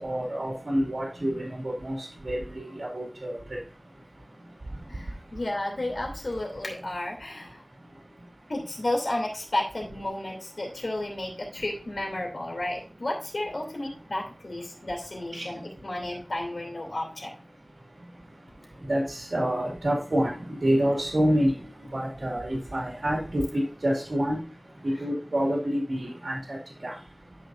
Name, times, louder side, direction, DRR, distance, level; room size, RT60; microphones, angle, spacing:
voice 1, 0.0-3.4 15.3-15.5 18.9-21.5 21.9-24.4 24.8-26.6 26.8-26.9, equal, 80° right, -3 dB, 2.2 m, -27 dB
voice 2, 4.9-7.6 8.5-17.3, left 1 dB, 80° left, 0 dB, 2.9 m, -32 dB
13.0 x 5.1 x 2.6 m, 0.37 s
wide cardioid pair, 50°, 0 cm